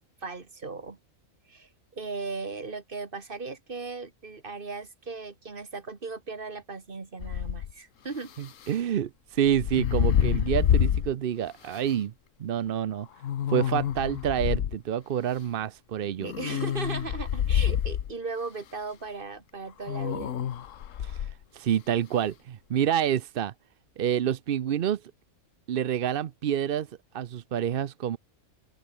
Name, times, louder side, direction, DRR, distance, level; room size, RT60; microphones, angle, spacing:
voice 1, 0.2-1.0 1.5-8.3 16.2-20.3, right 4 dB, 40° right, 2.1 m, -37 dB
sound 1, 7.2-7.7 9.5-11.1 11.8-11.9 13.2-14.7 16.2-18.1 19.9-21.3, left 10 dB, 65° left, 1.2 m, -27 dB
voice 2, 8.4-12.1 12.4-13.1 13.5-16.3 21.0-23.5 24.0-25.0 25.7-26.9 27.1-28.2, right 10 dB, 55° right, 0.6 m, -28 dB
open air
omnidirectional pair, 1.5 m